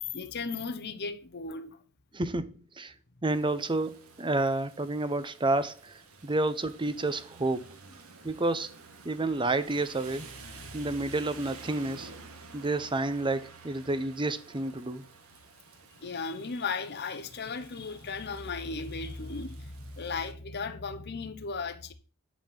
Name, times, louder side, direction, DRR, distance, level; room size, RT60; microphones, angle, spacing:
voice 1, 0.0-1.8 16.0-21.9, left 4 dB, 50° left, 1.0 m, -36 dB
voice 2, 2.1-2.9 3.2-7.8 8.2-8.7 9.0-10.3 10.7-12.1 12.5-15.1, right 2 dB, 25° right, 0.7 m, -30 dB
Rain, 3.3-20.3, right 3 dB, 90° right, 1.7 m, -51 dB
10.5 x 4.3 x 7.4 m
head